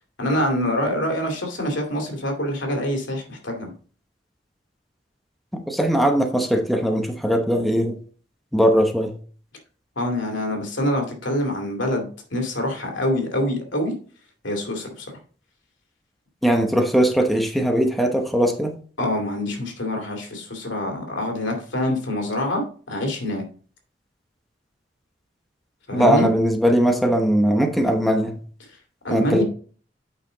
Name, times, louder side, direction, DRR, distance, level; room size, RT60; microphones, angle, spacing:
voice 1, 0.2-3.7 10.0-14.0 14.4-15.1 19.0-23.4 25.9-26.3 29.0-29.4, left 1 dB, 90° left, 2.4 m, -25 dB
voice 2, 5.5-8.0 8.5-9.1 16.4-18.8 25.9-28.4 29.1-29.4, equal, ahead, 1.0 m, -20 dB
8.7 x 5.0 x 3.9 m
head